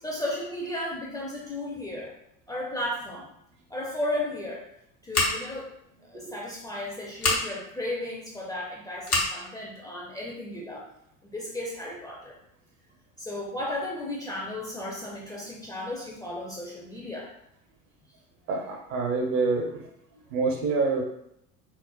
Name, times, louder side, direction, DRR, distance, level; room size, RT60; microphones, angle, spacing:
voice 1, 0.0-2.1 2.5-3.3 3.7-4.6 5.0-5.7 6.1-10.8 11.3-12.4 13.2-17.3, left 1 dB, 10° left, -3 dB, 0.4 m, -34 dB
Scissors, 5.1-5.6 7.2-7.4 9.0-9.3, left 2 dB, 90° left, 0.8 m, -25 dB
voice 2, 18.5-19.6 20.3-21.0, right 4 dB, 60° right, 2 dB, 0.8 m, -26 dB
4.3 x 2.1 x 2.3 m, 0.77 s
figure-of-eight pair, 65°, 43 cm